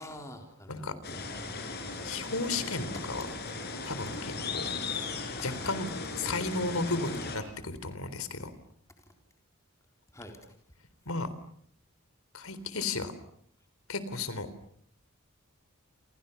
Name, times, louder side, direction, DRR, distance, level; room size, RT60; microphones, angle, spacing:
voice 1, 0.0-2.1 5.2-5.4 10.1-10.5, left 1 dB, 15° left, 4 dB, 4.0 m, -48 dB
sound 1, 1.0-7.4, left 3 dB, 50° left, 6.5 m, -37 dB
voice 2, 2.0-3.3 3.8-4.6 5.4-5.9 6.2-8.5 11.1-11.3 12.3-13.1 13.9-14.5, left 3 dB, 85° left, 14 dB, 3.8 m, -34 dB
29.5 x 29.0 x 7.0 m, 0.63 s
head